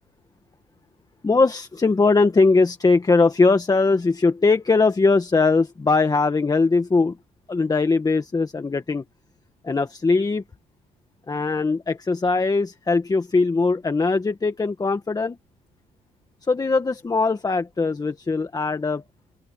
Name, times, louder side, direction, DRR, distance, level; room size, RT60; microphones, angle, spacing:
voice 1, 1.2-7.2 7.5-9.0 9.6-10.4 11.3-15.4 16.4-19.0, left 3 dB, 25° left, 1.7 m, -20 dB
open air
cardioid pair, 100°, 16 cm